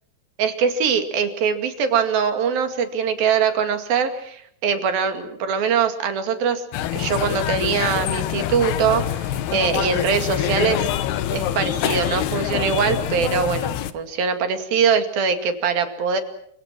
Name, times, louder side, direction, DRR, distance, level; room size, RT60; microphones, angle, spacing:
voice 1, 0.4-6.6 6.9-10.9 11.3-16.2, right 6 dB, 65° right, 7 dB, 4.1 m, -22 dB
sound 1, 6.7-13.9, left 11 dB, 80° left, 3.2 m, -25 dB
29.0 x 25.5 x 6.1 m, 0.67 s
omnidirectional pair, 4.5 m